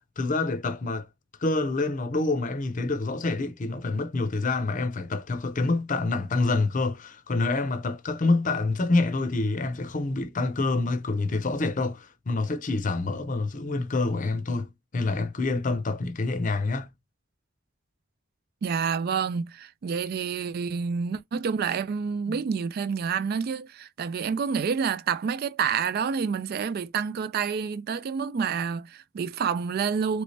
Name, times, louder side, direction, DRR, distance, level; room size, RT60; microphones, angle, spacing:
voice 1, 0.2-1.1 1.4-16.9 22.3-22.4, left 3 dB, 45° left, 0.6 m, -27 dB
voice 2, 18.6-30.2, right 6 dB, 55° right, 0.3 m, -28 dB
3.2 x 3.2 x 2.7 m
head